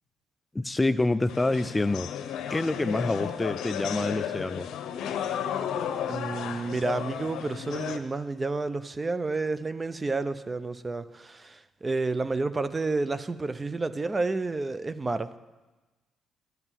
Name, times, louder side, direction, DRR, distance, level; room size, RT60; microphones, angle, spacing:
voice 1, 0.5-2.1 2.5-4.7, left 2 dB, 15° left, 0.3 m, -27 dB
sound 1, 1.3-8.0, left 9 dB, 80° left, 0.9 m, -33 dB
voice 2, 6.1-15.4, right 3 dB, 25° right, 0.6 m, -30 dB
12.0 x 8.2 x 7.5 m
cardioid pair, 90°, 0 cm